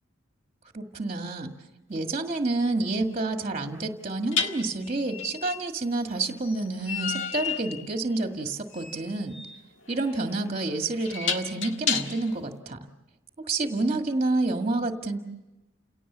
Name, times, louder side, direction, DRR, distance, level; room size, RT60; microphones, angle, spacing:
voice 1, 0.7-1.5 1.9-9.4 9.9-12.8 13.5-15.2, right 2 dB, 30° right, 4 dB, 1.7 m, -28 dB
sound 1, 1.9-2.1 4.3-12.4, left 6 dB, 70° left, 1.6 m, -33 dB
30.0 x 17.5 x 7.3 m, 1.0 s
head